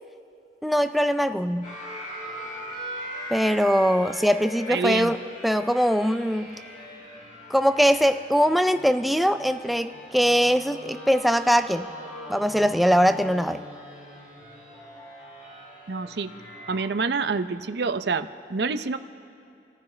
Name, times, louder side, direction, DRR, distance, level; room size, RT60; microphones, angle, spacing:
voice 1, 0.6-1.7 3.3-6.6 7.5-11.9 12.3-13.6, equal, ahead, 10 dB, 0.4 m, -22 dB
sound 1, 1.6-16.9, equal, 45° left, 4.4 m, -40 dB
voice 2, 4.7-5.1 15.9-16.3 16.7-19.0, right 4 dB, 65° right, 10 dB, 0.6 m, -27 dB
28.0 x 14.5 x 3.3 m, 2.6 s
head